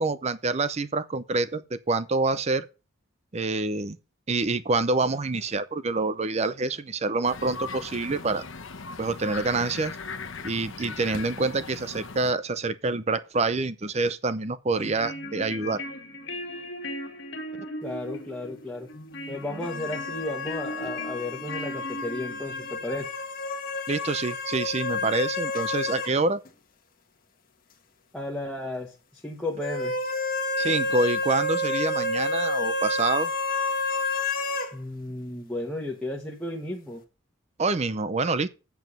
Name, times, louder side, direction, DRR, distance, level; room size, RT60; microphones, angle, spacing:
voice 1, 0.0-2.7 3.3-4.0 4.3-8.5 9.0-9.9 10.4-15.8 23.9-26.4 30.6-33.3 37.6-38.5, right 3 dB, 35° right, 0.6 m, -26 dB
sound 1, 7.2-12.3, left 4 dB, 75° left, 1.1 m, -38 dB
sound 2, 14.7-22.8, left 1 dB, 60° left, 2.0 m, -38 dB
voice 2, 17.8-18.9 19.3-23.1 28.1-29.9 34.7-37.0, left 1 dB, 5° left, 1.3 m, -34 dB
sound 3, 19.6-26.2 26.5-26.6 29.6-34.7, left 2 dB, 45° left, 1.5 m, -30 dB
8.1 x 7.0 x 5.5 m
head